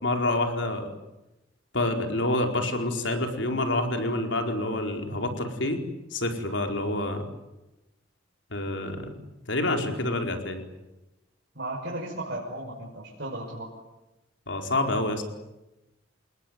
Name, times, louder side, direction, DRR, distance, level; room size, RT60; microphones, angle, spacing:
voice 1, 0.0-0.9 1.7-5.8 6.1-7.3 8.5-9.1 9.5-10.6 14.5-15.2, left 2 dB, 65° left, 5 dB, 4.6 m, -27 dB
voice 2, 11.5-13.7, right 1 dB, 60° right, -3 dB, 6.1 m, -35 dB
28.5 x 20.5 x 9.5 m, 0.97 s
head